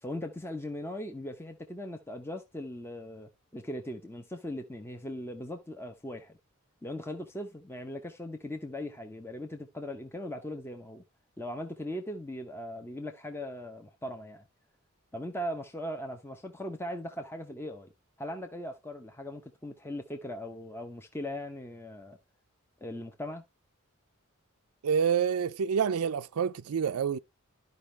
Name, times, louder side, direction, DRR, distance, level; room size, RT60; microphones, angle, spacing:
voice 1, 0.0-6.4 6.8-11.0 11.4-14.4 15.1-17.9 18.2-22.2 22.8-23.4, left 1 dB, 10° left, 0.8 m, -39 dB
voice 2, 24.8-27.2, right 7 dB, 85° right, 0.4 m, -27 dB
12.0 x 5.3 x 3.3 m
head